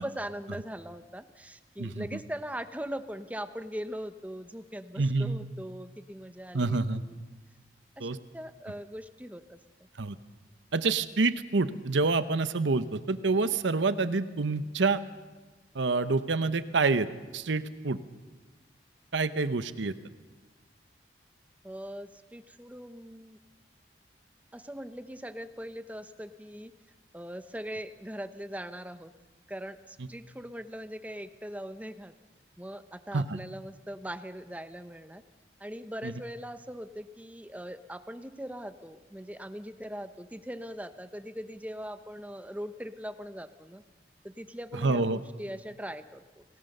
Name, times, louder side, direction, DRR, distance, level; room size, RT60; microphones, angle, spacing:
voice 1, 0.0-7.2 8.0-9.6 21.6-23.4 24.5-26.7 27.1-29.1 29.5-32.1 32.6-35.2 35.6-43.8 44.2-46.4, equal, 10° right, 11 dB, 0.8 m, -40 dB
voice 2, 5.0-5.4 6.5-7.0 8.0-8.2 10.0-10.2 10.7-15.0 15.7-17.1 17.3-18.0 19.1-19.9 33.1-33.4 36.0-36.1 44.8-45.2, right 3 dB, 90° right, 13 dB, 0.9 m, -27 dB
28.0 x 18.5 x 6.7 m, 1.3 s
head